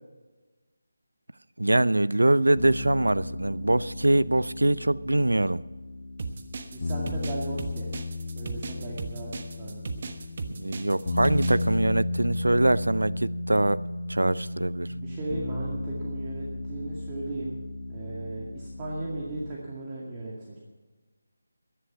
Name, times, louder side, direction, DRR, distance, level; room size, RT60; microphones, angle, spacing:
voice 1, 1.6-5.6 10.6-13.8 14.1-14.9, right 1 dB, 85° right, 0.5 m, -23 dB
sound 1, 2.6-19.6, left 2 dB, 45° left, 1.9 m, -34 dB
sound 2, 6.2-11.7, right 4 dB, 40° right, 1.2 m, -36 dB
voice 2, 6.7-7.9 8.3-9.3 9.6-10.1 14.8-17.6 17.9-20.6, right 2 dB, 20° right, 2.2 m, -36 dB
14.5 x 11.0 x 5.8 m
figure-of-eight pair, 160°, 0 cm